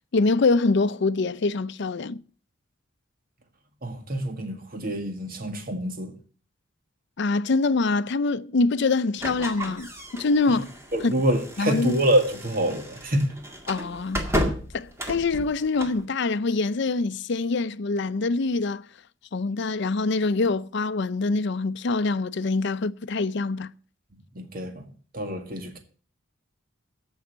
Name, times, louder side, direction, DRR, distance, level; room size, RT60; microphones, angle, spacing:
voice 1, 0.1-2.2 7.2-10.7 11.0-11.1 11.6-12.0 13.7-14.3 14.7-18.9 19.3-23.7, left 3 dB, 60° left, 0.5 m, -24 dB
voice 2, 3.8-6.1 10.5-10.6 10.9-13.3 24.4-24.8 25.1-25.8, right 1 dB, 45° right, 1.9 m, -26 dB
sound 1, 9.2-16.0, equal, 15° right, 1.9 m, -33 dB
14.0 x 5.6 x 7.9 m
head